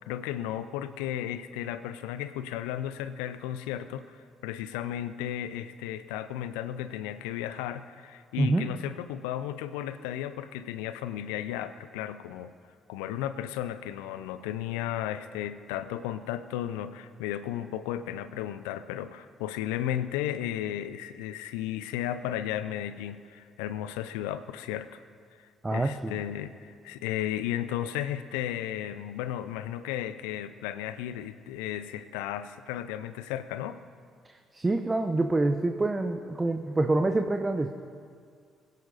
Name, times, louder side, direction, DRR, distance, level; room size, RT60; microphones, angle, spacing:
voice 1, 0.1-4.2 4.4-12.5 12.9-25.0 25.7-33.8, left 11 dB, 80° left, 13 dB, 0.6 m, -34 dB
voice 2, 25.6-26.2 34.3-37.7, right 2 dB, 25° right, 6 dB, 0.9 m, -26 dB
22.0 x 10.5 x 4.1 m, 2.2 s
hypercardioid pair, 50°, 0 cm